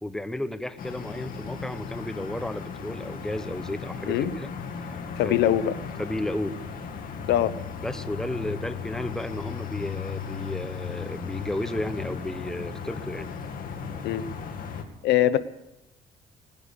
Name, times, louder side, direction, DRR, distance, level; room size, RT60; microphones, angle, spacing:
voice 1, 0.0-4.5 4.8-5.0 5.2-5.4 6.0-6.6 7.8-13.3, left 1 dB, 5° left, 11 dB, 1.0 m, -33 dB
sound 1, 0.8-14.8, left 6 dB, 55° left, 2.5 m, -36 dB
voice 2, 5.1-5.7 7.3-7.5 14.0-14.2 15.0-15.4, left 12 dB, 80° left, 14 dB, 0.9 m, -22 dB
20.0 x 10.5 x 6.5 m, 0.96 s
cardioid pair, 110°, 17 cm